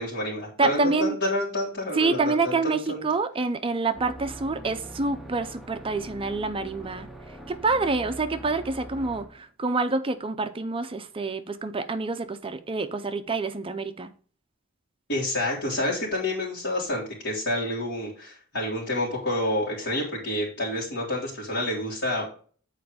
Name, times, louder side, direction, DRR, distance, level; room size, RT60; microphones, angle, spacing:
voice 1, 0.0-3.0 15.1-22.3, left 1 dB, 60° left, 3.4 m, -28 dB
voice 2, 0.6-1.2 1.9-7.1 7.5-14.1, right 3 dB, 25° right, 0.6 m, -27 dB
sound 1, 3.9-9.4, right 1 dB, ahead, 1.0 m, -42 dB
8.4 x 4.7 x 5.0 m
head